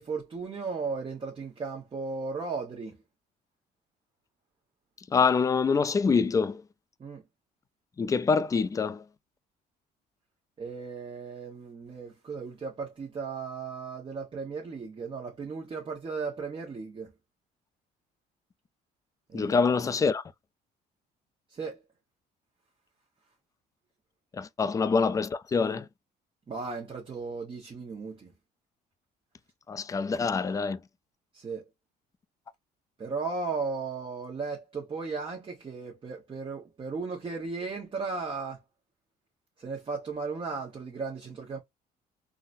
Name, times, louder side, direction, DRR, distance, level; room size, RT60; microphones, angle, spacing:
voice 1, 0.0-3.0 7.0-7.2 10.6-17.1 19.3-19.6 21.5-21.8 24.6-24.7 26.5-28.3 31.3-31.7 33.0-38.6 39.6-41.6, right 4 dB, 30° right, 1.0 m, -36 dB
voice 2, 5.1-6.6 8.0-9.0 19.3-20.2 24.4-25.9 29.7-30.8, left 5 dB, 20° left, 0.3 m, -25 dB
3.8 x 2.1 x 2.5 m
cardioid pair, 110°, 17 cm